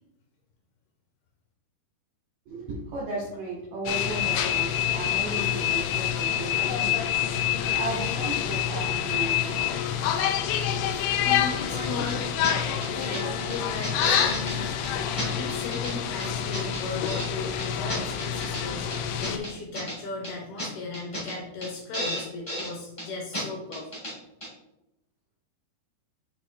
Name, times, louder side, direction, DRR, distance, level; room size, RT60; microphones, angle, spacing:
voice 1, 2.5-7.3 7.7-9.7 11.6-12.0 13.1-13.5, right 2 dB, 90° right, -3 dB, 1.8 m, -36 dB
sound 1, 3.9-19.4, left 9 dB, 90° left, 3.1 m, -27 dB
voice 2, 11.2-12.2 12.8-14.7 15.1-23.9, left 3 dB, 75° left, -1 dB, 2.5 m, -37 dB
sound 2, 12.1-12.2 12.4-12.5 12.8-13.2 13.5-14.5 14.8-14.9 15.2-15.9 16.2-17.3 17.6-18.6 18.9-20.0 20.2-20.3 20.6-20.7 20.9-21.3 21.6-21.7 21.9-22.7 23.0-23.1 23.3-23.4 23.7-24.1 24.4-24.5, equal, 30° left, 0.5 m, -33 dB
8.1 x 2.9 x 4.5 m, 0.86 s
omnidirectional pair, 5.4 m